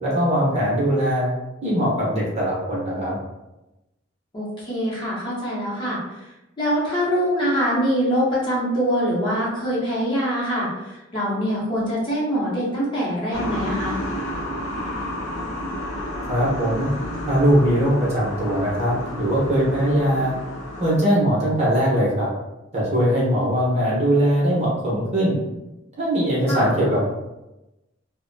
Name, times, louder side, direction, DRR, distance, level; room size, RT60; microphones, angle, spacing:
voice 1, 0.0-1.3 1.6-3.2 16.3-16.9 17.3-20.3 20.8-22.3 22.7-25.4 26.0-27.0, equal, 35° right, -5 dB, 0.8 m, -21 dB
voice 2, 4.3-6.0 6.6-14.0 26.5-26.7, equal, 25° left, -7 dB, 0.8 m, -24 dB
sound 1, 13.3-21.0, left 1 dB, 80° left, 0.6 m, -31 dB
2.6 x 2.1 x 2.6 m, 0.97 s
head